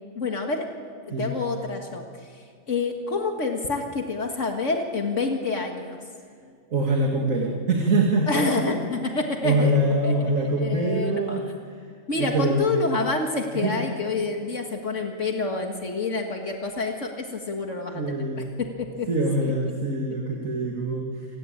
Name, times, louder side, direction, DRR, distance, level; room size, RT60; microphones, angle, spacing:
voice 1, 0.0-6.0 8.3-10.3 10.6-11.4 12.1-19.1 19.4-19.5 20.3-20.4, left 3 dB, 70° left, 3 dB, 2.1 m, -28 dB
voice 2, 6.7-8.7 9.4-11.4 12.1-12.6 13.5-13.7 17.9-18.5 19.1-21.3, right 1 dB, 85° right, 0 dB, 2.6 m, -24 dB
28.0 x 17.0 x 8.7 m, 2.2 s
omnidirectional pair, 1.3 m